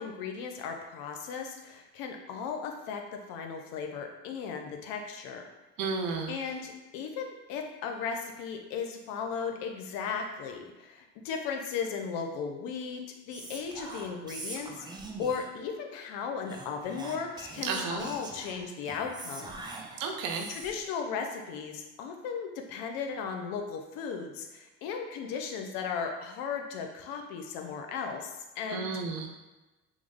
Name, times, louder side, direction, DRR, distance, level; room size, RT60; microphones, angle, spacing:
voice 1, 0.0-5.4 6.3-19.5 20.5-29.0, left 6 dB, 80° left, 4 dB, 0.5 m, -36 dB
voice 2, 5.8-6.4 17.6-18.1 20.0-20.5 28.7-29.3, right 4 dB, 70° right, 3 dB, 0.6 m, -32 dB
Whispering, 13.3-15.6 16.5-20.9, right 2 dB, 15° right, 0.4 m, -43 dB
3.0 x 2.0 x 3.5 m, 1.1 s
supercardioid pair, 85°, 35 cm